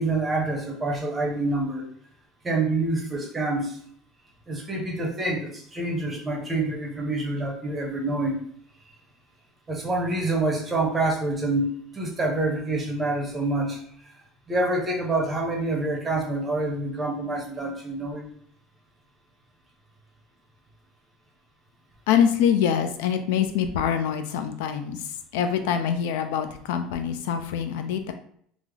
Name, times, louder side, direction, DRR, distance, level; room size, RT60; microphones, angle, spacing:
voice 1, 0.0-1.8 2.4-3.8 4.5-8.4 9.7-14.1 14.5-18.3, right 2 dB, 15° right, -1 dB, 0.6 m, -27 dB
voice 2, 22.1-28.1, left 8 dB, 90° left, 8 dB, 0.4 m, -25 dB
3.2 x 2.0 x 3.5 m, 0.64 s
cardioid pair, 175°, 0 cm